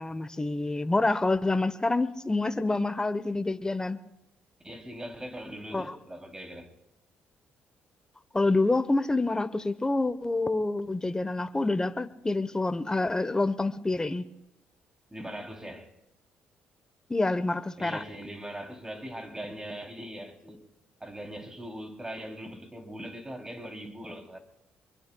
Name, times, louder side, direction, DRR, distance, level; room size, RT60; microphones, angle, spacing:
voice 1, 0.0-4.0 5.7-5.9 8.3-14.2 17.1-18.0, left 2 dB, 15° left, 1.0 m, -27 dB
voice 2, 4.6-6.7 15.1-15.9 17.8-20.6 21.0-24.4, right 1 dB, 15° right, 3.1 m, -40 dB
24.5 x 22.5 x 2.3 m
supercardioid pair, 70°, 4 cm